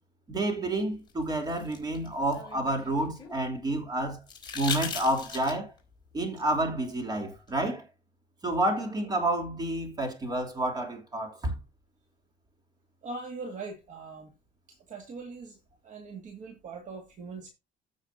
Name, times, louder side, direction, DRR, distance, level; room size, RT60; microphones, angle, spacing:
voice 1, 0.3-4.2 4.5-5.7 6.1-7.8 8.4-11.5, right 1 dB, 20° right, 3.2 m, -29 dB
sound 1, 1.1-3.4 4.3-5.8 7.5-7.6, left 6 dB, 25° left, 3.8 m, -38 dB
voice 2, 13.0-14.3 14.9-15.6 15.8-17.5, right 4 dB, 40° right, 2.1 m, -41 dB
15.5 x 6.4 x 2.7 m
cardioid pair, 165°, 18 cm